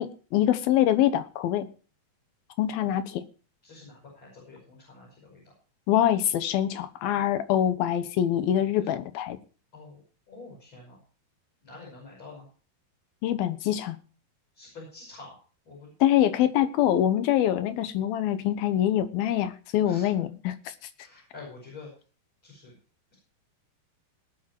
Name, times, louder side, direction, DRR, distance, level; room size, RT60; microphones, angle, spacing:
voice 1, 0.0-1.7 2.6-3.2 5.9-9.4 13.2-14.0 16.0-20.7, left 11 dB, 80° left, 2.8 m, -24 dB
voice 2, 3.6-5.5 8.8-8.9 9.7-10.0 10.3-11.0 11.6-12.5 14.5-15.4 15.6-15.9 19.8-20.1 21.0-21.9 22.4-22.7, left 3 dB, 30° left, 6.6 m, -47 dB
19.5 x 7.6 x 4.5 m
omnidirectional pair, 4.3 m